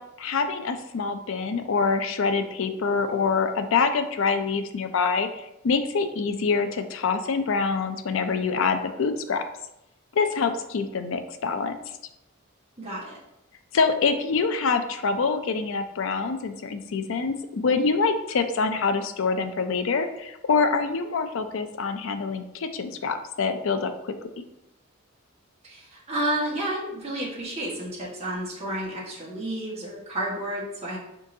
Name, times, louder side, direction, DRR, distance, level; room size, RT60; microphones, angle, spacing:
voice 1, 0.2-9.4 10.1-11.9 13.7-24.1, left 4 dB, 65° left, 8 dB, 0.4 m, -25 dB
voice 2, 12.8-13.2 25.6-31.0, right 1 dB, 30° right, -7 dB, 1.5 m, -31 dB
4.6 x 3.8 x 2.7 m, 0.86 s
head